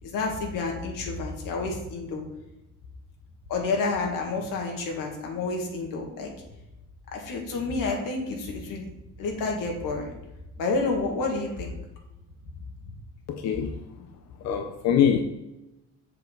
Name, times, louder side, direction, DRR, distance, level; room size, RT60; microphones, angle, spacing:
voice 1, 0.0-2.2 3.5-6.3 7.1-8.9 9.2-10.1 10.6-11.7, left 3 dB, 85° left, 1 dB, 2.2 m, -29 dB
voice 2, 13.3-13.7 14.4-15.2, left 8 dB, 55° left, 5 dB, 0.7 m, -23 dB
7.5 x 7.1 x 4.0 m, 0.93 s
cardioid pair, 160°, 32 cm